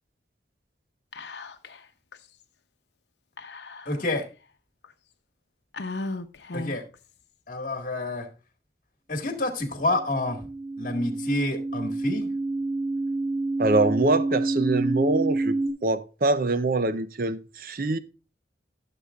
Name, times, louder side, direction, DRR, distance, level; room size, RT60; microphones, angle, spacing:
Whispering, 1.1-1.8 2.1-2.2 3.4-4.2 4.8-4.9 5.7-7.0, left 2 dB, 85° left, 0.8 m, -36 dB
voice 1, 3.9-4.3 6.5-6.8 7.5-8.3 9.1-10.5 10.8-12.3, left 2 dB, 50° left, 1.7 m, -28 dB
sound 1, 9.9-15.7, right 2 dB, 25° right, 1.6 m, -28 dB
voice 2, 13.6-18.0, right 2 dB, 50° right, 0.6 m, -24 dB
14.5 x 6.8 x 2.4 m
head